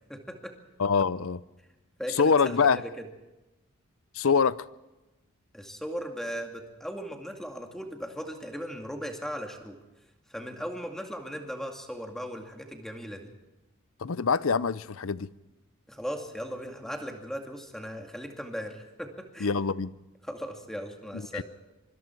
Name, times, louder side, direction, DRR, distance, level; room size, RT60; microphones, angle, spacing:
voice 1, 0.1-0.6 2.0-3.1 5.5-9.8 10.3-13.3 15.9-19.5 20.2-21.4, equal, ahead, 2.3 m, -38 dB
voice 2, 0.8-1.4 2.2-2.8 4.1-4.7 14.0-15.3 19.4-19.9 21.1-21.4, left 5 dB, 65° left, 0.6 m, -25 dB
25.0 x 24.5 x 4.6 m
head